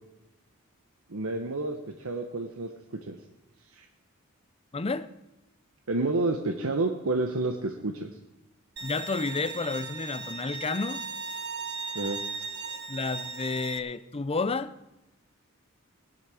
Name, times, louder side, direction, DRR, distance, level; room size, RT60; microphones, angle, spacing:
voice 1, 1.1-3.2 3.7-3.9 5.9-8.1 11.9-12.2, right 2 dB, 90° right, 1.0 m, -30 dB
voice 2, 4.7-5.1 8.8-11.0 12.9-14.7, left 3 dB, 30° left, 0.6 m, -31 dB
Bowed string instrument, 8.8-13.8, right 4 dB, 55° right, 1.4 m, -37 dB
17.0 x 11.0 x 4.9 m
head